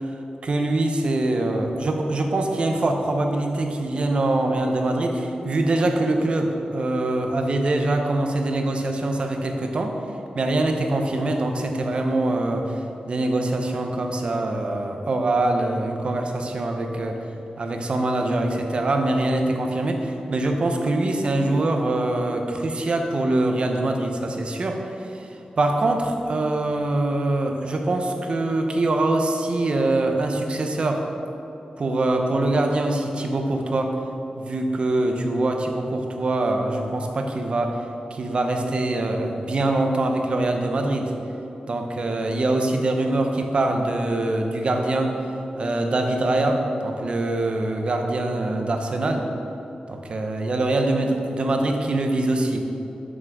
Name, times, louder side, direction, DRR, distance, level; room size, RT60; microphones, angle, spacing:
voice 1, 0.4-9.9 10.3-17.2 17.6-25.3 25.6-31.0 31.8-34.0 34.4-37.8 38.1-41.1 41.7-45.1 45.6-49.3 49.9-52.6, right 2 dB, 45° right, 3 dB, 0.7 m, -23 dB
7.3 x 6.2 x 4.6 m, 3.0 s
wide cardioid pair, 165°, 3 cm